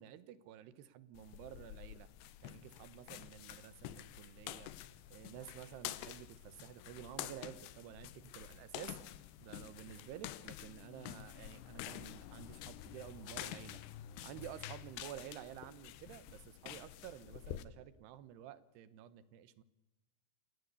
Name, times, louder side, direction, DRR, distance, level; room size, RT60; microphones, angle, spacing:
voice 1, 0.0-2.1 2.4-4.7 5.1-9.0 9.4-13.8 14.2-19.6, right 11 dB, 85° right, 15 dB, 3.3 m, -51 dB
sound 1, 1.2-17.6, left 13 dB, 90° left, 3.1 m, -49 dB
28.5 x 17.0 x 8.3 m, 1.1 s
omnidirectional pair, 4.6 m